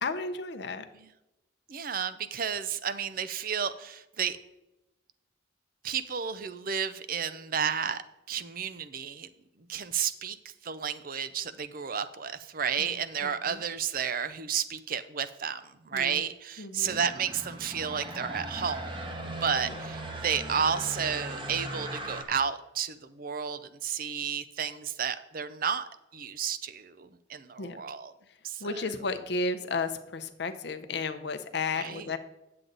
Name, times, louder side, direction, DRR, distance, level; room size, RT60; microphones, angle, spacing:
voice 1, 0.0-0.8 12.8-13.6 15.9-16.2 16.6-17.0 27.6-27.8 28.6-32.2, left 3 dB, 60° left, 8 dB, 0.6 m, -33 dB
voice 2, 1.7-4.4 5.8-8.0 8.3-9.3 9.7-18.9 19.2-28.1 28.4-28.7 31.8-32.1, right 7 dB, 45° right, 13 dB, 0.5 m, -32 dB
sound 1, 16.8-22.2, right 1 dB, 25° right, 1.0 m, -38 dB
9.2 x 7.7 x 3.9 m, 0.95 s
head